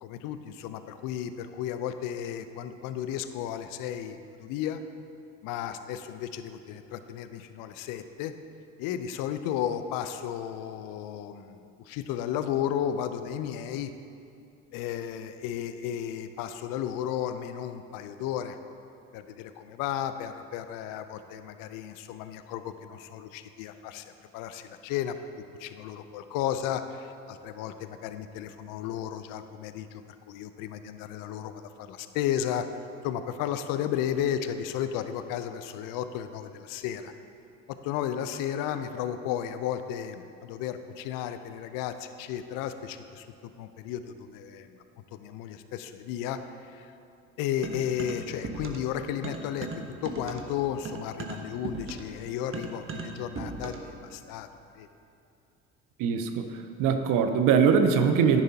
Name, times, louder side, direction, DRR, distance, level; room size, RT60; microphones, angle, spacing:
voice 1, 0.0-4.8 5.4-8.3 8.8-13.9 14.7-18.6 19.1-25.2 25.6-30.0 30.3-32.7 33.0-37.1 37.8-44.8 45.1-46.9 47.4-49.7 50.0-54.5 54.7-54.9, left 10 dB, 60° left, 10 dB, 0.7 m, -34 dB
sound 1, 47.6-49.0 49.2-54.0, right 4 dB, 35° right, 1.1 m, -38 dB
voice 2, 56.0-56.4 56.8-58.4, right 6 dB, 55° right, 7 dB, 0.8 m, -22 dB
10.5 x 10.0 x 2.9 m, 2.6 s
hypercardioid pair, 60°, 37 cm